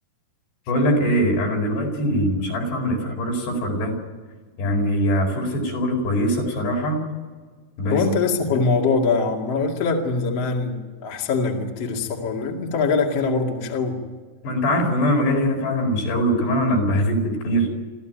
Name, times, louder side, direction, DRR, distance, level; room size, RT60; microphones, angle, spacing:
voice 1, 0.7-3.9 4.6-7.0 7.8-8.0 8.5-8.6 14.4-17.7, equal, 75° left, 1 dB, 6.7 m, -22 dB
voice 2, 7.9-14.0, left 4 dB, 45° left, 0 dB, 2.9 m, -23 dB
26.5 x 14.5 x 9.3 m, 1.5 s
omnidirectional pair, 4.9 m